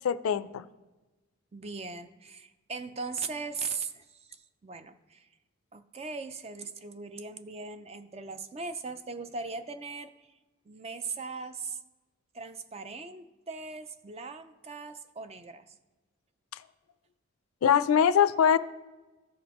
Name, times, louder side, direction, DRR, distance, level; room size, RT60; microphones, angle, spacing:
voice 1, 0.0-0.6 17.6-18.6, left 8 dB, 90° left, 14 dB, 0.4 m, -22 dB
voice 2, 1.5-5.3 5.7-10.1 10.7-11.8 12.3-15.7, right 4 dB, 30° right, 10 dB, 0.4 m, -39 dB
14.5 x 5.1 x 3.0 m, 1.2 s
head